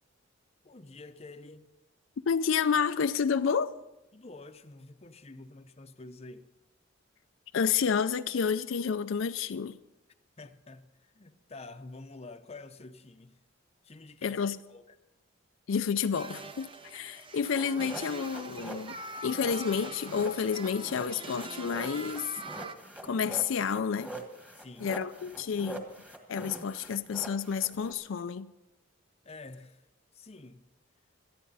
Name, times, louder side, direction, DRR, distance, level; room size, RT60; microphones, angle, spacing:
voice 1, 0.6-1.7 4.1-6.5 10.4-13.4 13.8-14.4 14.7-15.0 24.5-24.9 29.2-29.9 30.1-30.7, left 3 dB, 30° left, 0.7 m, -48 dB
voice 2, 2.3-3.7 7.5-9.8 14.2-14.6 15.7-19.0 19.2-22.4 23.0-24.2 24.8-25.9 26.3-28.5, left 6 dB, 70° left, 0.4 m, -30 dB
sound 1, 16.1-22.7, right 3 dB, 25° right, 0.7 m, -43 dB
sound 2, 17.4-27.9, right 1 dB, 5° right, 1.5 m, -44 dB
18.5 x 13.0 x 4.0 m
head